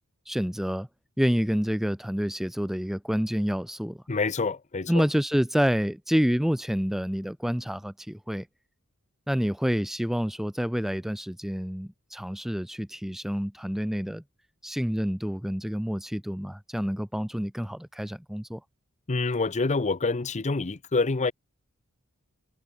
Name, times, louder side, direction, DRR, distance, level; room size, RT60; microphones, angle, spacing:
voice 1, 0.3-0.9 1.2-4.0 4.9-8.5 9.3-14.2 14.6-18.6, equal, ahead, 0.5 m, -28 dB
voice 2, 4.1-5.0 19.1-21.3, left 3 dB, 35° left, 0.7 m, -27 dB
head